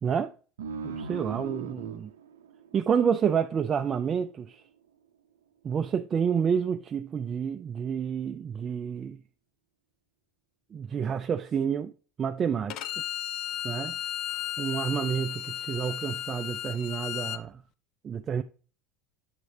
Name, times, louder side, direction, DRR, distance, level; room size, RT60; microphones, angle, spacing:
voice 1, 0.0-0.3 0.8-2.1 2.7-4.6 5.6-9.2 10.7-11.9 12.2-12.9 13.6-14.0 14.6-17.6 18.0-18.4, right 7 dB, 35° right, 0.3 m, -29 dB
sound 1, 0.6-3.7, right 6 dB, 85° right, 0.5 m, -38 dB
Bowed string instrument, 12.7-17.4, left 11 dB, 55° left, 0.3 m, -34 dB
8.0 x 3.2 x 4.0 m
hypercardioid pair, 90°, 0 cm